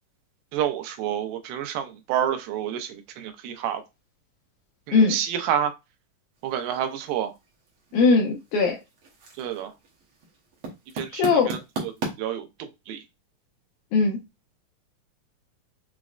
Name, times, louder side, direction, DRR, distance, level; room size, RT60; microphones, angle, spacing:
voice 1, 0.5-3.8 4.9-5.7 6.4-7.3 9.4-9.7 11.0-11.9 12.2-13.0, right 10 dB, 90° right, 2.4 m, -29 dB
sound 1, 6.3-12.1, right 3 dB, 70° right, 1.3 m, -38 dB
voice 2, 7.9-8.8 11.1-11.6 13.9-14.2, left 4 dB, 85° left, 1.8 m, -20 dB
5.8 x 2.1 x 2.4 m
omnidirectional pair, 4.0 m